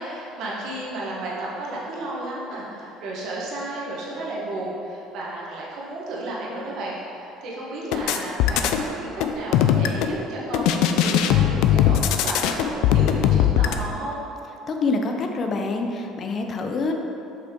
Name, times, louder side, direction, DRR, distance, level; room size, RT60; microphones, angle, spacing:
voice 1, 0.0-14.2, right 1 dB, 60° right, -5 dB, 1.5 m, -33 dB
sound 1, 7.9-8.8 9.2-10.2 10.5-13.7, left 10 dB, 75° left, 0.4 m, -19 dB
voice 2, 14.7-16.9, left 3 dB, 35° left, 3 dB, 0.7 m, -26 dB
6.7 x 5.5 x 3.8 m, 2.9 s
cardioid pair, 125°, 0 cm